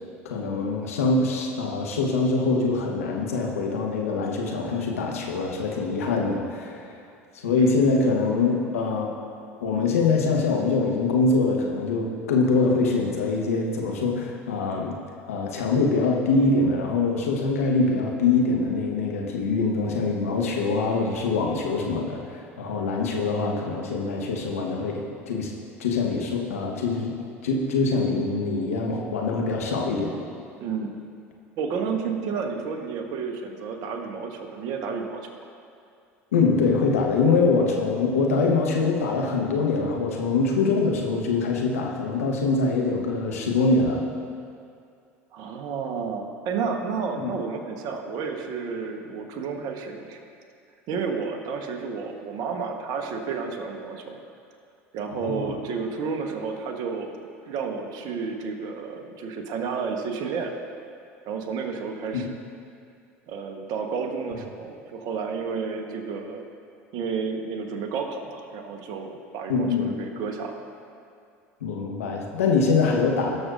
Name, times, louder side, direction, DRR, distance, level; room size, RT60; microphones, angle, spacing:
voice 1, 0.2-6.9 7.4-9.1 9.6-15.0 15.3-25.5 25.8-27.1 27.4-30.2 36.3-44.0 47.2-47.3 55.1-55.5 62.1-62.2 69.5-69.9 71.6-73.4, left 3 dB, 85° left, 0 dB, 1.1 m, -24 dB
voice 2, 30.6-31.0 31.6-35.3 45.3-50.2 50.9-54.2 54.9-60.5 61.2-62.3 63.3-66.4 66.9-70.6, right 5 dB, 55° right, 4 dB, 1.1 m, -31 dB
18.5 x 6.4 x 2.5 m, 2.4 s
hypercardioid pair, 75°, 8 cm